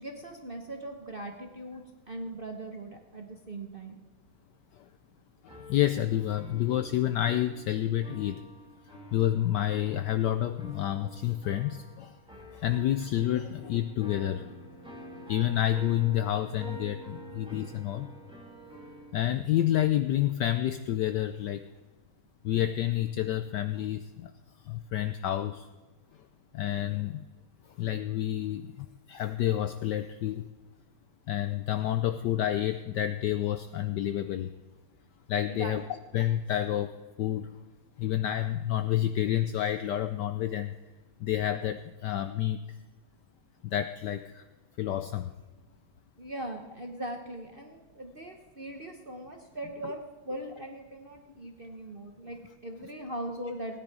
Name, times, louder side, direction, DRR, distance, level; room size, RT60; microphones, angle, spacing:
voice 1, 0.0-4.0 35.5-35.8 46.2-53.8, right 1 dB, 40° right, 3 dB, 0.8 m, -40 dB
voice 2, 5.4-8.4 9.1-12.2 12.5-14.5 15.1-18.1 19.1-21.6 22.4-24.3 24.6-25.7 26.5-27.2 27.8-30.5 31.3-34.5 35.3-35.8 36.1-37.5 38.0-40.7 41.2-42.6 43.6-44.4 44.8-45.3, left 12 dB, 75° left, 10 dB, 1.0 m, -29 dB
sound 1, 5.5-19.2, right 1 dB, ahead, 2.0 m, -48 dB
17.5 x 9.8 x 4.8 m, 1.3 s
omnidirectional pair, 2.3 m